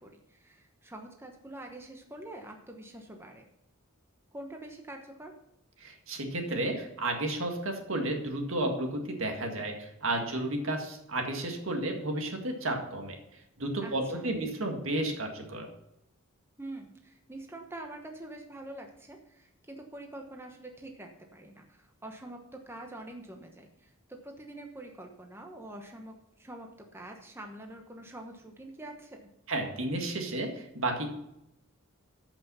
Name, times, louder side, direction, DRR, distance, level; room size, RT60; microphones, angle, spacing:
voice 1, 0.0-3.4 4.3-5.3 13.8-14.3 16.6-29.2, right 1 dB, 10° right, 2 dB, 1.1 m, -45 dB
voice 2, 5.8-13.2 13.6-15.7 29.5-31.1, right 2 dB, 65° right, 3 dB, 2.0 m, -32 dB
13.5 x 6.0 x 5.6 m, 0.83 s
head